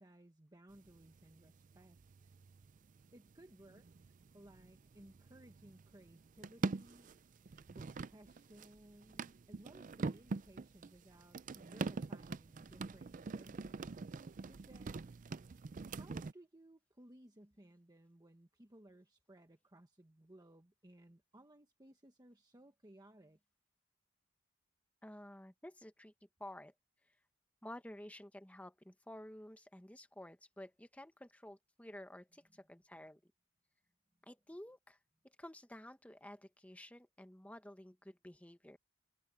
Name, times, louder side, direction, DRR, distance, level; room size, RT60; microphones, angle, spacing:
voice 1, 0.0-2.3 3.1-3.9 4.3-7.1 7.7-14.0 14.5-15.1 15.9-23.4 32.5-32.7, right 1 dB, 20° right, 1.2 m, -61 dB
sound 1, 0.7-16.3, right 4 dB, 40° right, 0.4 m, -45 dB
voice 2, 25.0-26.1 26.4-26.7 27.6-33.3 34.3-35.0 35.2-38.8, left 1 dB, 5° left, 1.3 m, -52 dB
head